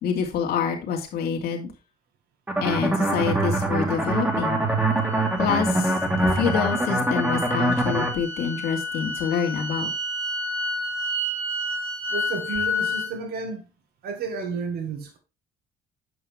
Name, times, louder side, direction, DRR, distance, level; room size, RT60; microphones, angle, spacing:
voice 1, 0.0-1.7 2.6-4.6 5.4-9.9, left 6 dB, 70° left, 1.9 m, -27 dB
sound 1, 2.5-8.1, right 2 dB, 10° right, 1.6 m, -24 dB
sound 2, 4.0-13.1, left 2 dB, 35° right, 2.8 m, -31 dB
voice 2, 12.1-13.7 14.0-15.2, right 5 dB, 70° right, 1.8 m, -32 dB
7.8 x 5.7 x 3.4 m
cardioid pair, 110°, 17 cm